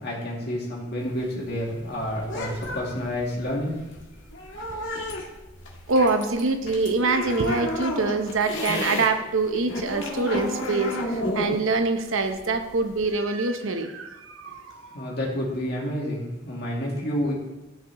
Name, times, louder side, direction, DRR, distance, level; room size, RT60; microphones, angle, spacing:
voice 1, 0.0-3.8 14.9-17.3, equal, 55° left, -4 dB, 2.4 m, -29 dB
sound 1, 1.0-9.1 9.4-13.1, left 1 dB, 70° left, 1.7 m, -32 dB
voice 2, 5.9-15.0, right 3 dB, 85° right, 7 dB, 0.8 m, -25 dB
14.0 x 6.0 x 3.0 m, 1.0 s
head